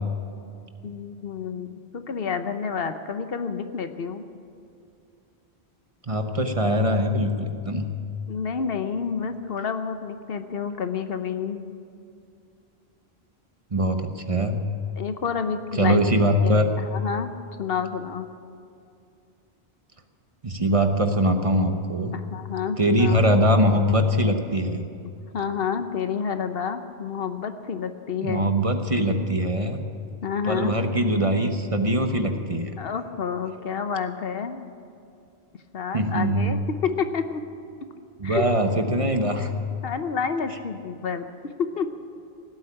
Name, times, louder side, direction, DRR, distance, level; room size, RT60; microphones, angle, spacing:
voice 1, 0.8-1.7 1.9-4.2 8.3-11.6 15.0-16.2 16.4-17.3 17.6-18.3 22.1-23.2 25.3-28.5 30.2-30.8 32.8-34.6 35.7-37.4 38.2-38.5 39.4-39.5 39.8-41.2 41.6-41.9, left 6 dB, 65° left, 9 dB, 1.1 m, -29 dB
voice 2, 6.0-7.9 13.7-14.6 15.7-16.8 20.4-22.2 22.8-24.8 28.2-29.8 30.4-32.7 35.9-36.5 38.2-39.5, equal, 35° right, 6 dB, 1.0 m, -22 dB
17.5 x 8.4 x 9.9 m, 2.5 s
omnidirectional pair, 1.1 m